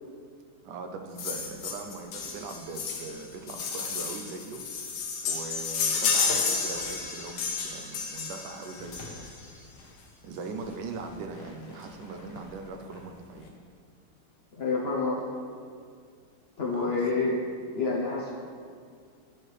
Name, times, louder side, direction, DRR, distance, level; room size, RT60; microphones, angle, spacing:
voice 1, 0.6-4.9 5.2-9.3 10.2-13.6 16.7-17.0, right 3 dB, 75° right, 4 dB, 1.2 m, -40 dB
sound 1, 1.2-9.5 10.6-10.7 11.0-11.1 11.3-11.5 11.8-12.4 12.9-13.0, left 5 dB, 75° left, 1.3 m, -31 dB
voice 2, 14.6-15.3 16.6-17.4 17.7-18.3, left 3 dB, 55° left, -4 dB, 0.7 m, -28 dB
9.6 x 4.5 x 3.2 m, 2.1 s
omnidirectional pair, 1.9 m